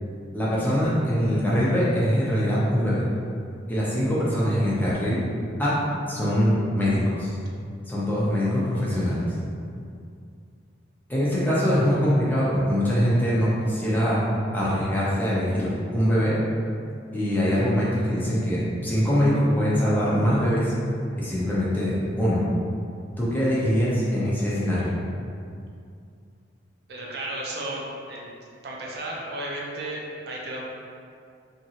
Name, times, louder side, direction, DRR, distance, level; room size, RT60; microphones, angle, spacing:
voice 1, 0.3-3.1 3.7-5.2 5.6-5.8 6.1-7.3 7.9-9.3 11.1-14.3 14.5-16.4 17.1-20.7 21.2-22.4 23.2-24.9, equal, 10° left, -8 dB, 0.5 m, -23 dB
voice 2, 26.9-28.4 28.6-30.7, right 1 dB, 60° right, -3 dB, 0.5 m, -34 dB
2.9 x 2.5 x 2.8 m, 2.4 s
head